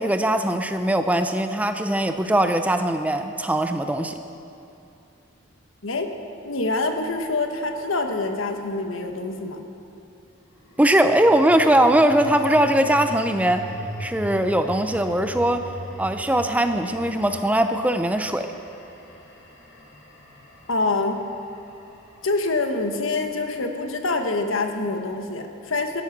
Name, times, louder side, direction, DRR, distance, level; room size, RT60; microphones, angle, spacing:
voice 1, 0.0-4.2 10.8-13.7 14.0-15.6 16.0-18.5, right 1 dB, 5° right, 7 dB, 0.5 m, -20 dB
voice 2, 6.4-9.6 20.7-21.2 22.2-26.0, left 3 dB, 80° left, 5 dB, 1.3 m, -25 dB
sound 1, 6.4-8.9 10.5-22.8, equal, 65° left, 2.4 m, -40 dB
16.5 x 12.5 x 6.0 m, 2.7 s
head